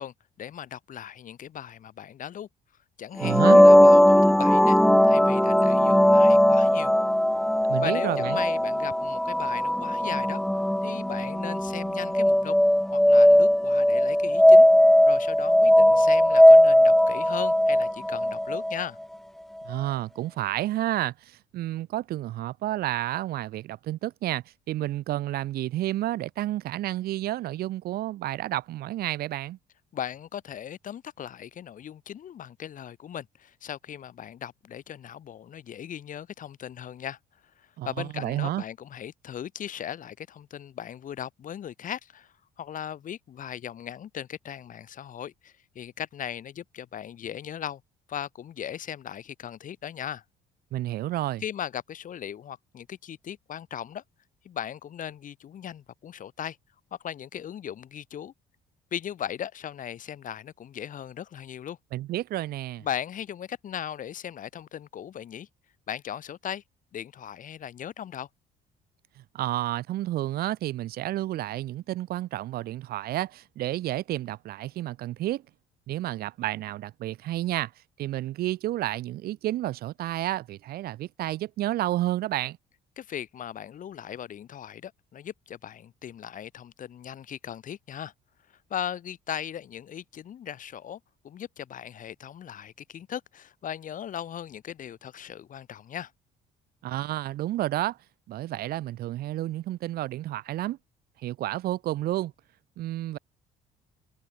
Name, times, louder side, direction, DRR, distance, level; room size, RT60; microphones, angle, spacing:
voice 1, 0.0-2.5 3.0-6.9 7.8-10.4 10.8-12.6 12.9-14.7 15.1-19.0 29.9-37.2 37.6-47.8 48.1-50.2 51.4-54.0 54.4-56.6 57.0-58.3 58.9-61.8 62.8-65.5 65.9-66.6 66.9-68.3 83.0-88.1 88.7-96.1, left 9 dB, 50° left, 3.2 m, -38 dB
sound 1, 3.2-18.8, left 1 dB, ahead, 0.3 m, -18 dB
voice 2, 3.2-3.6 7.7-8.4 19.6-29.6 37.8-38.6 50.7-51.4 61.9-62.8 69.3-75.4 75.9-77.7 78.0-82.6 96.8-98.0 98.3-100.8 101.2-102.3 102.8-103.2, right 15 dB, 65° right, 0.7 m, -30 dB
cardioid pair, 110°, 17 cm